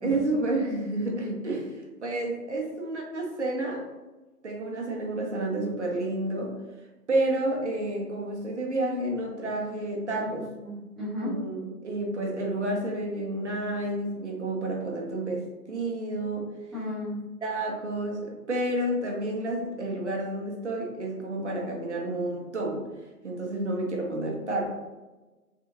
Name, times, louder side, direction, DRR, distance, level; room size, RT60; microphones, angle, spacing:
voice 1, 0.0-1.7 2.0-3.8 4.4-6.5 7.1-10.4 11.2-16.5 17.4-22.9 23.2-24.8, right 2 dB, 50° right, -1 dB, 0.8 m, -30 dB
voice 2, 10.2-11.4 16.7-17.2, left 1 dB, ahead, -12 dB, 0.4 m, -34 dB
3.4 x 2.3 x 2.9 m, 1.2 s
figure-of-eight pair, 165°, 46 cm